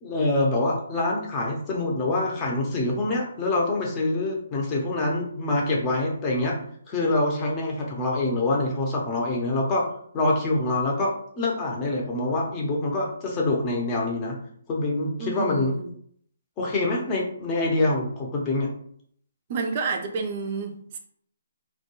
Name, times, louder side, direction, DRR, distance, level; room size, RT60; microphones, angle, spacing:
voice 1, 0.0-6.5 6.9-9.8 10.1-11.1 11.4-14.4 14.7-15.7 16.6-18.7, left 2 dB, 25° left, -2 dB, 0.7 m, -25 dB
voice 2, 15.2-15.9 19.5-21.0, right 4 dB, 40° right, 4 dB, 0.5 m, -30 dB
2.2 x 2.2 x 3.0 m, 0.63 s
hypercardioid pair, 145°, 0 cm